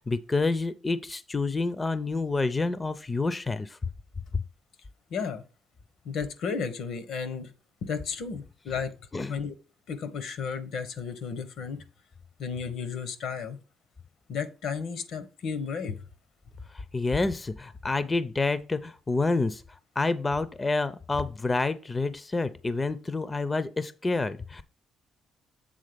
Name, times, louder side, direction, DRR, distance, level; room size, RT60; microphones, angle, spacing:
voice 1, 0.1-3.8 4.3-4.4 9.1-9.4 16.7-19.6 20.0-24.6, left 3 dB, 25° left, 0.5 m, -28 dB
voice 2, 5.1-5.4 6.0-7.5 7.8-8.9 9.3-9.5 9.9-11.8 12.4-13.6 14.3-16.0, left 6 dB, 75° left, 1.0 m, -33 dB
7.5 x 3.7 x 5.1 m
cardioid pair, 90°, 0 cm